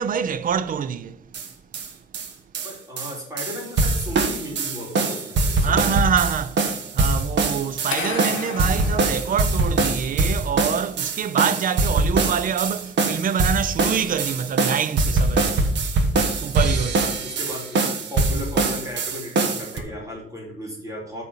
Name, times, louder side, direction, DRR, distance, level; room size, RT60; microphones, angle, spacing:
voice 1, 0.0-1.4 5.6-6.6 6.9-15.7 16.4-17.1, right 7 dB, 40° right, 0.5 m, -25 dB
sound 1, 1.3-1.5 1.7-2.3 2.5-19.8, right 3 dB, 60° right, 1.2 m, -23 dB
voice 2, 2.6-5.9 17.0-21.2, left 1 dB, 15° right, 2.9 m, -35 dB
sound 2, 7.9-10.0, left 5 dB, 75° left, 1.5 m, -32 dB
8.7 x 4.3 x 7.1 m
cardioid pair, 175°, 21 cm